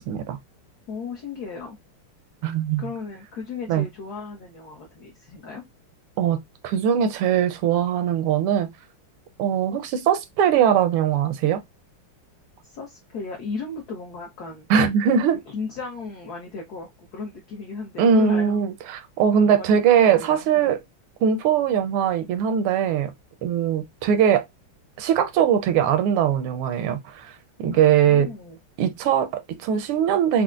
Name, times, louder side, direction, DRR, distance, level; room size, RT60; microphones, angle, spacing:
voice 1, 0.1-0.4 2.4-2.8 3.7-3.9 6.2-8.7 9.4-11.6 14.7-15.4 18.0-20.8 21.2-23.1 23.4-24.4 25.0-28.3 28.8-30.4, right 8 dB, 80° right, 1.5 m, -21 dB
voice 2, 0.9-1.8 2.8-5.6 12.6-14.7 15.5-18.6 19.5-20.8 27.7-28.6, left 4 dB, 65° left, 1.0 m, -35 dB
4.4 x 2.0 x 2.4 m
omnidirectional pair, 2.4 m